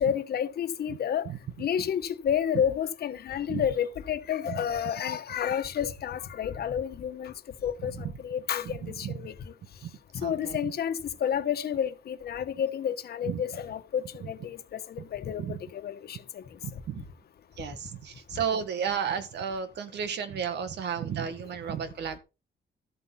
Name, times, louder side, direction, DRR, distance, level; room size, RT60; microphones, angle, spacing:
voice 1, 0.0-1.3 1.6-7.3 7.6-9.3 10.1-16.4, left 9 dB, 70° left, 1.2 m, -30 dB
voice 2, 1.3-1.9 2.5-2.6 3.5-3.7 4.5-4.7 7.8-8.0 8.6-9.2 9.8-9.9 10.2-10.7 13.2-13.4 14.2-14.3 15.4-15.6 16.6-17.1 17.6-22.2, right 7 dB, 90° right, 1.7 m, -33 dB
13.0 x 8.2 x 4.3 m
wide cardioid pair, 160°, 17 cm